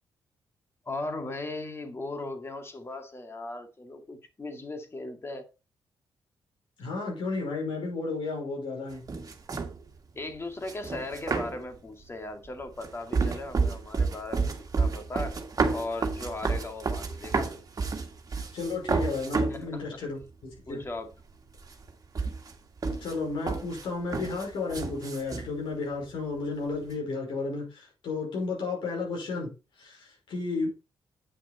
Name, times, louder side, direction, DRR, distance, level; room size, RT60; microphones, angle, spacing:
voice 1, 0.9-5.5 10.1-15.4 15.7-17.5 19.5-19.8 20.7-21.1, left 2 dB, 30° left, 2.1 m, -38 dB
voice 2, 6.8-9.0 18.5-20.8 23.0-29.5 29.8-30.7, left 3 dB, 80° left, 5.4 m, -33 dB
sound 1, 8.9-9.9 10.6-11.8 12.4-19.7 20.2-20.3 20.6-21.3 21.6-25.5, right 4 dB, 45° right, 1.7 m, -30 dB
9.1 x 6.1 x 4.4 m
cardioid pair, 80°, 9 cm